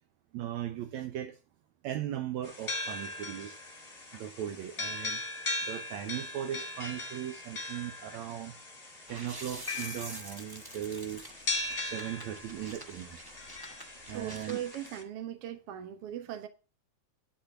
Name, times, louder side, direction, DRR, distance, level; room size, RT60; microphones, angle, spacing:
voice 1, 0.3-1.4 1.8-3.6 4.1-8.6 9.1-11.2 11.8-13.2 14.1-14.6, right 11 dB, 75° right, 2.0 m, -38 dB
sound 1, 2.4-15.0, left 2 dB, 20° left, 1.9 m, -39 dB
sound 2, 9.1-14.9, right 1 dB, 30° right, 0.4 m, -47 dB
voice 2, 14.1-16.5, right 11 dB, 60° right, 2.0 m, -39 dB
10.5 x 4.9 x 7.8 m
omnidirectional pair, 3.3 m